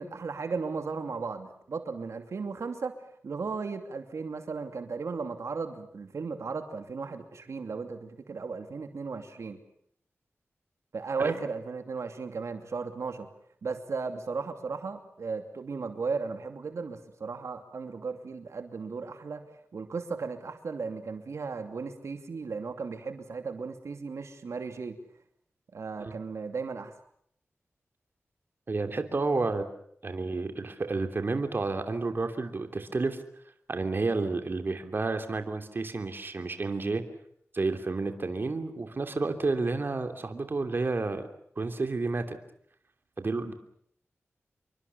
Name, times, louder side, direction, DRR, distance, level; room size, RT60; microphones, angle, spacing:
voice 1, 0.0-2.9 3.2-9.6 10.9-13.3 13.6-25.0 25.7-26.9, right 4 dB, 80° right, 7 dB, 2.7 m, -35 dB
voice 2, 28.7-29.7 30.0-33.2 33.7-37.0 37.5-41.2 41.6-42.4 43.2-43.5, right 3 dB, 45° right, 7 dB, 3.0 m, -30 dB
28.5 x 24.0 x 7.0 m, 0.68 s
wide cardioid pair, 105°, 5 cm